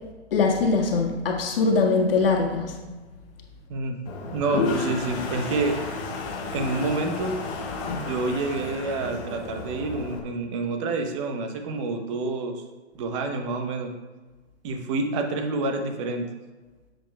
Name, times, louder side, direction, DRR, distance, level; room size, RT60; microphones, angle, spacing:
voice 1, 0.3-2.7 7.8-8.1, left 4 dB, 55° left, 0 dB, 1.6 m, -22 dB
Toilet flush, 4.1-10.2, left 3 dB, 15° left, 0.5 m, -32 dB
voice 2, 4.3-5.8 6.5-7.4 8.0-12.6 12.9-13.9 14.6-16.3, right 3 dB, 25° right, 5 dB, 0.8 m, -28 dB
10.0 x 7.7 x 2.2 m, 1.2 s
hypercardioid pair, 135°, 34 cm